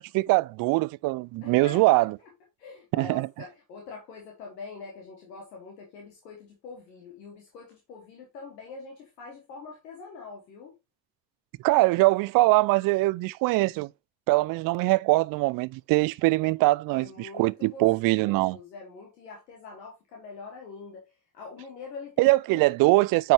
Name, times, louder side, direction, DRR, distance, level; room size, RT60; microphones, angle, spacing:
voice 1, 0.0-2.1 2.9-3.3 11.6-13.9 14.3-18.6 22.2-23.3, right 21 dB, 45° right, 0.4 m, -22 dB
voice 2, 1.4-1.8 2.6-10.7 16.9-21.0 21.3-22.6, left 4 dB, 75° left, 1.7 m, -44 dB
9.0 x 5.3 x 3.0 m
figure-of-eight pair, 45°, 49 cm